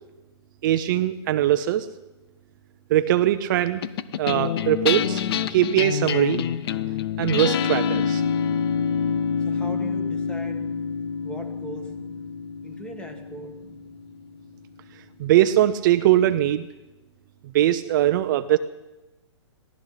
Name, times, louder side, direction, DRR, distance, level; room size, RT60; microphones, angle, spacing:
voice 1, 0.6-1.9 2.9-3.8 4.2-5.2 5.5-6.4 7.2-8.2 15.2-16.7 17.5-18.6, right 13 dB, 45° right, 10 dB, 0.7 m, -21 dB
sound 1, 3.8-14.4, left 7 dB, 55° left, 0.8 m, -27 dB
voice 2, 9.5-10.7 11.2-11.9 12.6-13.6, equal, 5° left, 6 dB, 1.9 m, -39 dB
22.0 x 16.0 x 4.1 m, 1.0 s
hypercardioid pair, 145°, 15 cm